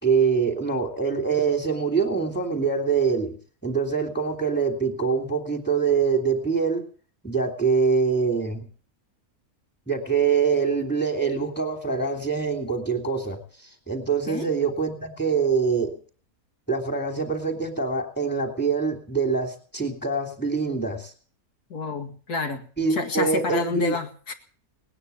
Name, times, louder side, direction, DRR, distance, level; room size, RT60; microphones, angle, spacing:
voice 1, 0.0-3.4 3.6-6.9 7.2-8.7 9.9-16.0 16.7-21.1 22.8-24.0, right 5 dB, 5° left, 5 dB, 3.2 m, -24 dB
voice 2, 21.7-22.6 22.9-24.3, left 3 dB, 80° left, 5 dB, 2.5 m, -29 dB
19.5 x 9.9 x 7.0 m, 0.43 s
omnidirectional pair, 1.6 m